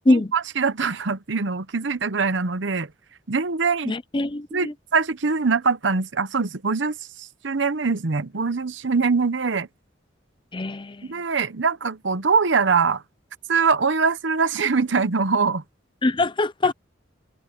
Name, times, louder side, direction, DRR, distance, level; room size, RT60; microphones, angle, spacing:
voice 1, 0.1-2.9 3.3-3.9 4.5-9.7 11.1-13.0 13.5-15.6, right 4 dB, 65° right, 0.9 m, -23 dB
voice 2, 3.8-4.7 10.5-11.1 16.0-16.7, left 2 dB, 25° left, 0.6 m, -23 dB
head